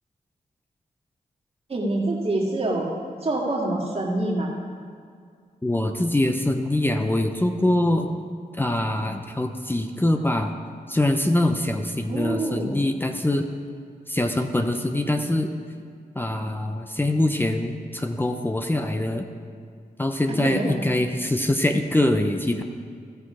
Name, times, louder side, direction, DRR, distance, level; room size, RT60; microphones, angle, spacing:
voice 1, 1.7-2.9 3.2-4.5 12.1-12.7 20.3-20.8, right 2 dB, 45° right, -2 dB, 1.9 m, -26 dB
voice 2, 5.6-8.1 8.6-10.5 10.9-13.4 14.1-15.5 16.1-19.3 20.0-22.6, left 1 dB, 15° left, 5 dB, 0.7 m, -23 dB
15.5 x 6.0 x 4.9 m, 2.2 s
cardioid pair, 75°, 15 cm